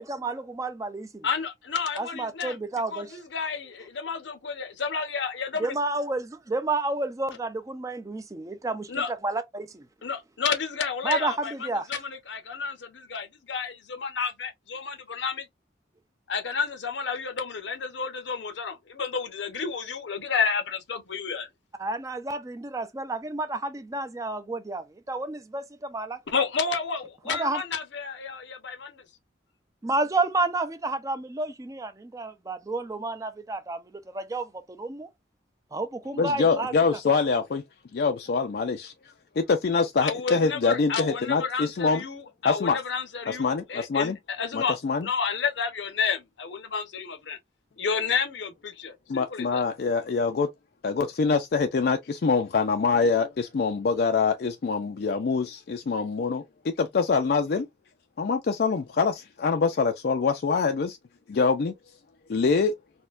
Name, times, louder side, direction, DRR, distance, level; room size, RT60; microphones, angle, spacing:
voice 1, 0.0-1.3 2.0-3.2 5.6-9.9 11.0-11.9 21.8-26.2 27.3-27.6 29.8-33.8 34.1-34.5 34.8-35.1 35.7-36.7, right 2 dB, 20° right, 0.4 m, -30 dB
voice 2, 1.2-2.6 2.9-5.7 8.9-9.1 10.0-11.5 11.9-15.4 16.3-21.5 26.3-28.9 40.0-47.4 47.8-49.6, left 5 dB, 75° left, 0.7 m, -31 dB
voice 3, 36.1-37.6 37.9-38.9 39.4-42.0 42.4-42.8 43.3-44.2 44.5-45.1 49.1-50.5 50.8-57.7 58.2-61.0 61.3-61.7 62.3-62.7, left 4 dB, 55° left, 0.4 m, -25 dB
4.2 x 2.2 x 2.4 m
head